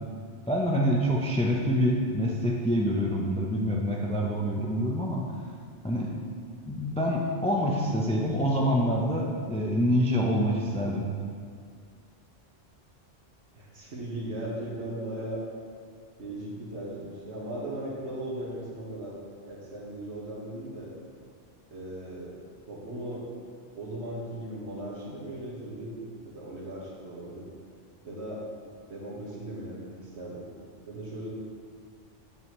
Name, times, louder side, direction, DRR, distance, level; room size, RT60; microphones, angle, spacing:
voice 1, 0.5-5.3 5.8-6.2 6.7-11.0, equal, 10° left, -2 dB, 0.4 m, -26 dB
voice 2, 13.5-15.4 16.2-19.1 19.5-20.9 21.7-22.4 22.7-23.2 23.8-27.5 28.0-28.4 28.9-30.5 30.9-31.3, right 1 dB, 65° right, -4 dB, 1.7 m, -37 dB
9.1 x 6.3 x 3.1 m, 2.1 s
omnidirectional pair, 1.3 m